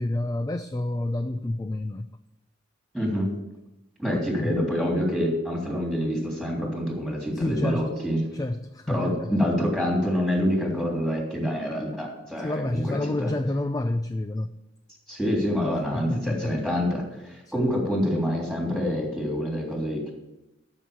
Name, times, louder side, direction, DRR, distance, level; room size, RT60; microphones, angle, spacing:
voice 1, 0.0-2.1 4.1-4.6 7.4-7.9 8.3-9.3 12.4-14.5 15.9-16.6 17.5-17.6, left 1 dB, 20° left, 10 dB, 0.4 m, -29 dB
voice 2, 2.9-3.3 4.0-8.2 8.9-13.3 15.1-20.1, equal, ahead, -1 dB, 3.4 m, -26 dB
13.0 x 6.3 x 7.0 m, 0.94 s
head